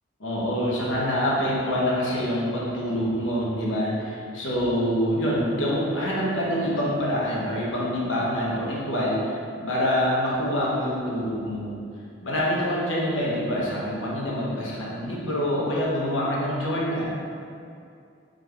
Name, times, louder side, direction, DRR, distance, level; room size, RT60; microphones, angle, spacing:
voice 1, 0.2-11.8 12.2-17.0, equal, 80° left, -5 dB, 0.9 m, -26 dB
3.9 x 3.3 x 3.3 m, 2.4 s
head